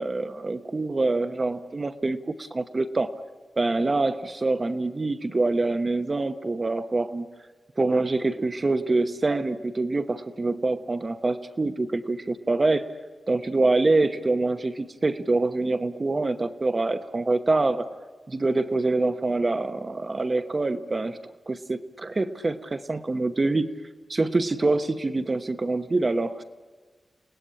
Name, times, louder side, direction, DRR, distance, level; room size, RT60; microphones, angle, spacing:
voice 1, 0.0-3.1 3.6-7.3 7.8-12.8 13.3-17.9 18.3-21.2 21.5-23.7 24.1-26.4, right 2 dB, 30° right, 9 dB, 1.0 m, -25 dB
29.5 x 18.5 x 9.9 m, 1.4 s
wide cardioid pair, 175°, 0 cm